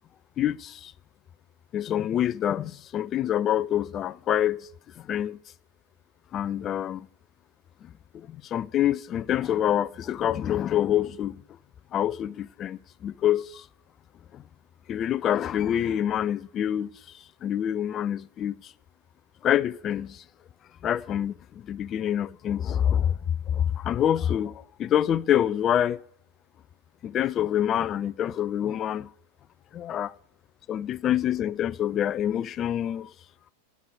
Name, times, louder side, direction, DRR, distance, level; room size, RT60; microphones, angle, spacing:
voice 1, 0.4-0.9 1.7-4.7 5.0-5.4 6.3-7.1 8.1-11.4 11.9-13.6 14.3-14.4 14.9-16.9 17.4-18.5 19.4-20.2 20.8-21.3 21.6-23.2 23.5-26.0 27.0-29.1 29.7-30.1 30.7-33.1, left 10 dB, 30° left, 0.3 m, -26 dB
12.0 x 9.4 x 4.8 m
figure-of-eight pair, 90°, 0 cm